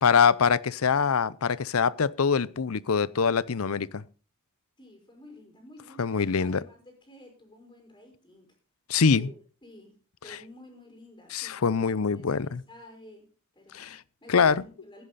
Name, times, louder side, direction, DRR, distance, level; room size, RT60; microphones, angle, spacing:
voice 1, 0.0-4.0 6.0-6.6 8.9-9.3 10.3-10.4 11.3-12.6 13.7-14.0 14.3-14.6, left 5 dB, 80° left, 0.6 m, -24 dB
voice 2, 4.8-8.5 9.1-9.3 9.6-9.9 10.2-13.2 13.5-13.9 14.2-15.0, left 1 dB, 20° left, 4.9 m, -51 dB
15.5 x 10.5 x 4.1 m
head